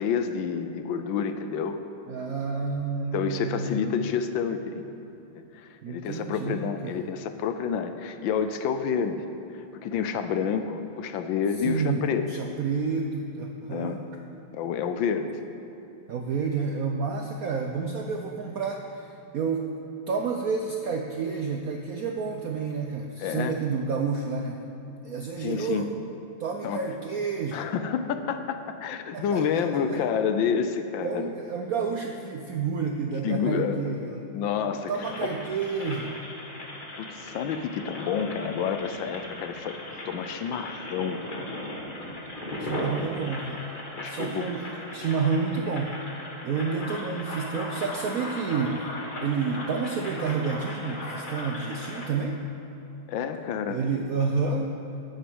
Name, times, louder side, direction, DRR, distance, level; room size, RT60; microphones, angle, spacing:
voice 1, 0.0-1.8 3.1-4.8 5.5-9.2 9.5-12.3 13.7-14.0 14.5-15.4 23.2-23.6 25.4-25.9 26.6-26.9 27.5-31.3 33.2-33.9 34.3-35.3 37.0-39.8 40.0-41.5 43.9-44.5 53.1-53.8, left 7 dB, 75° left, 9 dB, 1.3 m, -29 dB
voice 2, 2.1-3.9 5.8-7.0 11.6-14.0 16.1-19.7 20.1-24.6 25.0-25.9 26.4-27.6 29.1-29.6 29.9-30.0 31.0-34.3 34.9-36.1 42.6-43.6 44.1-45.9 46.4-48.9 49.2-52.4 53.7-54.7, right 5 dB, 75° right, 3 dB, 0.8 m, -30 dB
sound 1, 35.0-52.1, left 1 dB, 25° left, 1.4 m, -37 dB
11.5 x 6.8 x 7.8 m, 2.9 s
omnidirectional pair, 2.3 m